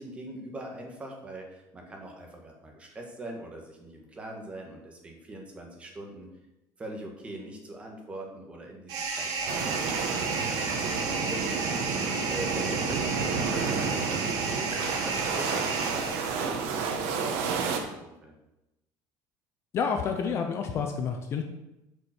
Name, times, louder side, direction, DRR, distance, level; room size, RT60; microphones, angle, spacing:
voice 1, 0.0-6.3 6.8-18.3, right 1 dB, 15° right, 1 dB, 1.5 m, -42 dB
sound 1, 8.9-16.6, right 4 dB, 50° right, 1.6 m, -32 dB
sound 2, 9.5-17.8, right 5 dB, 85° right, 1.4 m, -31 dB
voice 2, 19.7-21.4, left 6 dB, 35° left, 5 dB, 0.7 m, -29 dB
8.1 x 5.4 x 6.0 m, 0.93 s
cardioid pair, 175°, 8 cm